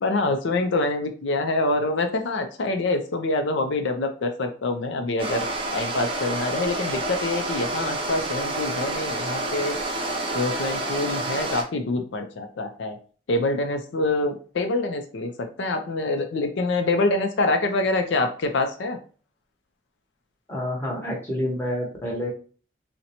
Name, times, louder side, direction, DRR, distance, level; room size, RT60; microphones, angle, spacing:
voice 1, 0.0-5.5 5.7-9.7 10.3-13.0 13.3-19.0, left 2 dB, 75° left, 6 dB, 0.5 m, -25 dB
sound 1, 5.2-11.6, right 2 dB, 30° right, 0.5 m, -29 dB
voice 2, 20.5-22.3, left 1 dB, 15° left, -3 dB, 0.9 m, -28 dB
3.8 x 2.1 x 2.8 m, 0.39 s
head